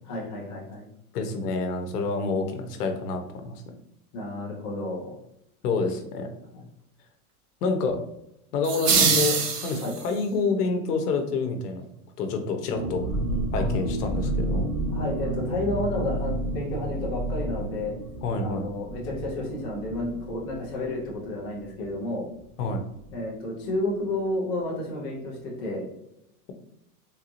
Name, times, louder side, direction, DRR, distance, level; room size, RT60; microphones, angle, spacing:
voice 1, 0.0-0.9 4.1-5.1 6.5-6.6 9.8-9.9 13.5-13.7 14.9-17.9 18.4-22.3 23.1-25.9, left 2 dB, 20° left, -4 dB, 0.3 m, -31 dB
voice 2, 1.1-3.5 5.6-6.3 7.6-8.0 8.5-9.4 9.6-11.8 12.2-13.0 13.5-14.7 18.2-18.7 22.6-22.8, left 4 dB, 85° left, 6 dB, 0.8 m, -27 dB
sound 1, 8.6-10.2, right 5 dB, 85° right, 0.9 m, -23 dB
sound 2, 12.7-22.1 22.4-22.5 22.8-23.1, right 1 dB, 25° right, 1.0 m, -31 dB
3.5 x 2.9 x 2.5 m, 0.80 s
supercardioid pair, 150°, 45 cm